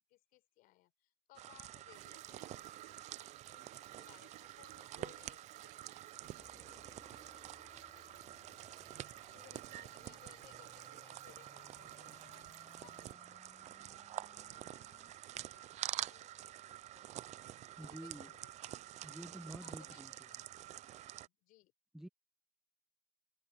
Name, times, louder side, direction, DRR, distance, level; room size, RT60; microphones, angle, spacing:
voice 1, 0.1-2.7 3.5-5.8 6.2-6.3 6.7-8.2 8.7-12.4 12.8-13.0 13.3-13.4 13.8-15.0 15.5-17.1 17.7-19.1 19.6-20.9 21.2-21.7, left 17 dB, 55° left, 4.9 m, -65 dB
sound 1, 1.4-21.3, right 13 dB, 40° right, 0.7 m, -48 dB
sound 2, 1.9-13.1, right 24 dB, 65° right, 1.1 m, -61 dB
sound 3, 6.4-15.2, left 4 dB, 15° left, 2.0 m, -64 dB
voice 2, 17.8-18.3 19.0-20.3 21.9-22.1, right 1 dB, ahead, 1.0 m, -49 dB
supercardioid pair, 115°, 18 cm